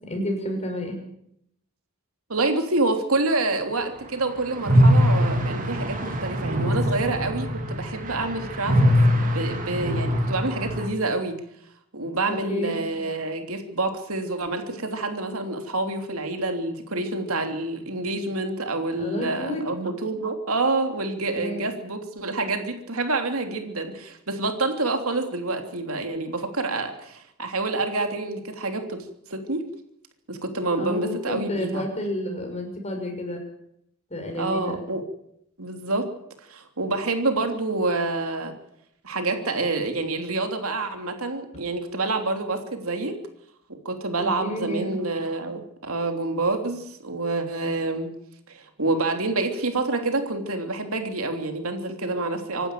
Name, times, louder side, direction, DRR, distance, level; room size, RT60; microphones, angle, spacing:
voice 1, 0.0-1.0 12.3-12.7 19.0-19.7 21.3-21.7 30.8-33.4 34.1-34.8 44.2-45.0, equal, 30° left, 3 dB, 6.2 m, -30 dB
voice 2, 2.3-8.8 9.1-11.4 11.9-29.6 30.3-31.8 34.4-35.0 35.6-36.1 36.5-38.5 39.0-43.2 43.7-48.1 48.5-52.7, right 2 dB, 75° right, 5 dB, 3.2 m, -27 dB
sound 1, 4.6-10.9, equal, 40° right, 3.6 m, -22 dB
26.0 x 12.0 x 9.3 m, 0.76 s
head